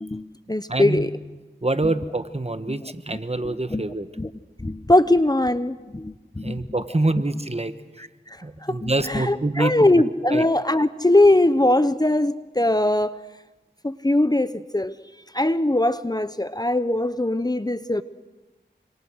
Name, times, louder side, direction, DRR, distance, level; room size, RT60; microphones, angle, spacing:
voice 1, 0.0-1.1 1.8-1.9 2.7-2.8 3.7-3.9 4.2-4.3 4.6-6.6 8.6-13.2 13.8-14.9 15.3-18.0, left 1 dB, 20° left, 13 dB, 0.8 m, -21 dB
voice 2, 0.7-1.1 1.6-4.1 6.4-7.7 8.4-9.9 10.3-10.4, right 2 dB, 35° right, 11 dB, 1.4 m, -25 dB
27.0 x 26.0 x 6.4 m, 1.2 s
wide cardioid pair, 50°, 19 cm